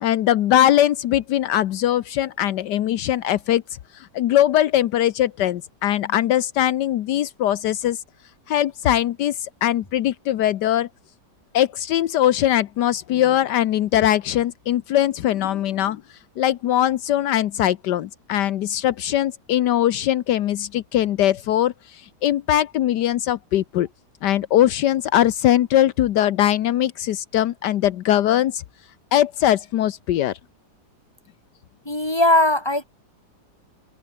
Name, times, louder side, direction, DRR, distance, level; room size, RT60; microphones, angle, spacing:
voice 1, 0.0-3.6 4.1-8.0 8.5-10.9 11.5-16.0 16.4-23.9 24.2-28.6 29.1-30.3, left 12 dB, 80° left, 1.4 m, -21 dB
voice 2, 31.9-32.8, left 1 dB, 15° left, 4.0 m, -19 dB
omnidirectional pair, 1.8 m